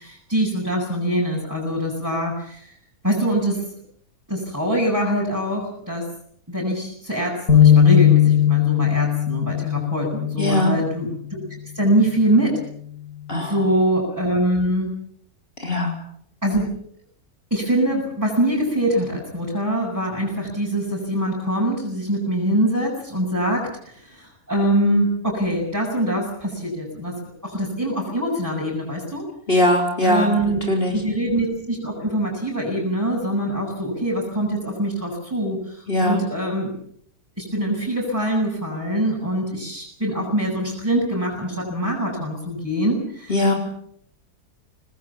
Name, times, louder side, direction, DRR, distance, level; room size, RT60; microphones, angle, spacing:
voice 1, 0.0-2.7 3.0-3.7 4.3-6.0 6.5-11.4 11.7-12.6 13.5-14.9 16.4-16.7 17.5-27.1 27.4-29.2 30.0-30.6 30.9-36.7 37.4-43.3, right 1 dB, 10° right, -6 dB, 7.7 m, -23 dB
sound 1, 7.5-11.0, left 9 dB, 75° left, 4.7 m, -17 dB
voice 2, 10.4-10.7 13.3-13.6 15.6-16.0 29.5-31.0 35.9-36.2 43.3-43.5, left 1 dB, 35° left, 2 dB, 4.4 m, -20 dB
26.5 x 20.0 x 7.2 m, 0.66 s
omnidirectional pair, 1.6 m